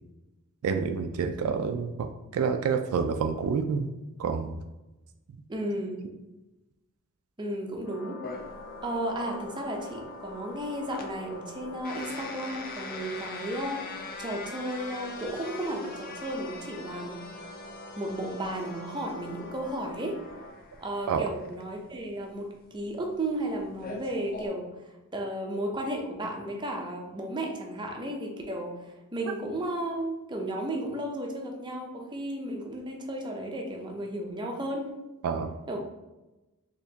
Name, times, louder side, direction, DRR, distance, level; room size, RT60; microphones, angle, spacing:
voice 1, 0.6-2.1 2.3-3.9 4.2-4.6 21.1-21.2 35.2-35.5, right 6 dB, 70° right, 7 dB, 0.3 m, -28 dB
voice 2, 5.5-6.0 7.4-8.2 8.8-17.2 18.0-20.2 20.8-24.7 25.1-34.8 35.7-35.8, right 1 dB, 20° right, 1 dB, 0.5 m, -34 dB
sound 1, 7.8-20.5, left 2 dB, 65° left, 1.2 m, -44 dB
sound 2, 8.2-24.5, left 4 dB, 40° left, 0.5 m, -44 dB
4.2 x 2.9 x 2.7 m, 1.0 s
head